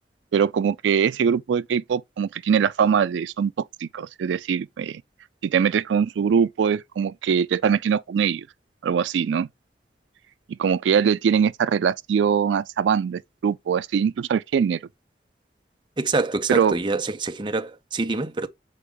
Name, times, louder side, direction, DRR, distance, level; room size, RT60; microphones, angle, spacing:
voice 1, 0.3-5.0 5.4-8.5 8.8-9.5 10.6-14.8 16.5-16.8, right 7 dB, 85° right, 0.3 m, -22 dB
voice 2, 16.0-18.5, right 3 dB, 25° right, 0.6 m, -26 dB
6.6 x 4.6 x 3.5 m
head